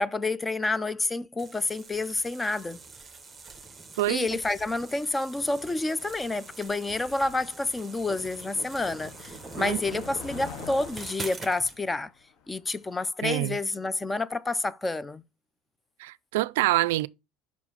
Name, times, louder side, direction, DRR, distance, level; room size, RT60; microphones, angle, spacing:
voice 1, 0.0-2.8 4.1-12.1 12.5-15.2, left 2 dB, 15° left, 0.4 m, -29 dB
sound 1, 1.4-11.8, right 4 dB, 15° right, 1.0 m, -44 dB
Motor vehicle (road), 2.7-13.0, left 7 dB, 55° left, 1.0 m, -49 dB
voice 2, 4.0-4.3 9.6-10.0 13.2-13.6 16.0-17.1, right 18 dB, 80° right, 0.3 m, -26 dB
5.7 x 4.8 x 5.7 m
supercardioid pair, 105°, 0 cm